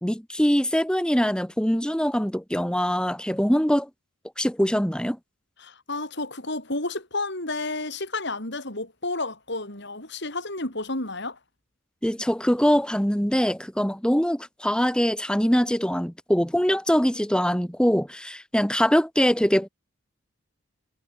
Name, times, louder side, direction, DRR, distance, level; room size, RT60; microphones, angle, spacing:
voice 1, 0.0-3.9 4.4-5.2 12.0-19.7, equal, 5° left, 2.3 m, -23 dB
voice 2, 5.6-11.4, left 2 dB, 55° left, 8.0 m, -31 dB
head